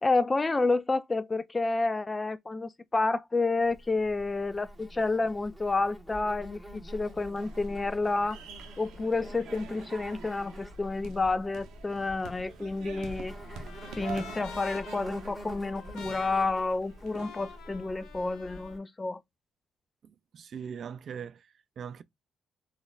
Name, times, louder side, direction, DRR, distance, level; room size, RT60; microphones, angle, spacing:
voice 1, 0.0-8.4 8.8-13.4 14.0-19.2, left 3 dB, 20° left, 0.4 m, -29 dB
Insect, 3.6-18.8, equal, ahead, 1.2 m, -46 dB
sound 1, 7.0-17.6, right 6 dB, 90° right, 0.7 m, -47 dB
Trumpet, 12.5-18.8, left 7 dB, 80° left, 0.7 m, -48 dB
voice 2, 20.0-22.0, right 7 dB, 55° right, 0.3 m, -41 dB
4.0 x 2.4 x 2.3 m
cardioid pair, 90°, 0 cm